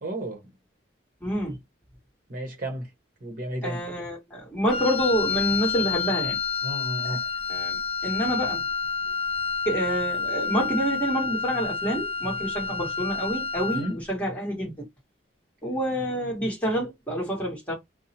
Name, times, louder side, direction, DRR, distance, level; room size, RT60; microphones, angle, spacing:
voice 1, 0.0-0.4 2.3-2.9 3.2-3.8 6.6-7.2 13.7-14.0, right 1 dB, 45° right, 0.9 m, -32 dB
voice 2, 1.2-1.6 3.6-6.4 7.0-7.2 7.5-8.7 9.6-14.9 15.6-17.7, equal, 10° left, 1.3 m, -28 dB
Wind instrument woodwind instrument, 4.7-13.9, left 5 dB, 30° left, 0.4 m, -29 dB
2.6 x 2.0 x 2.8 m
head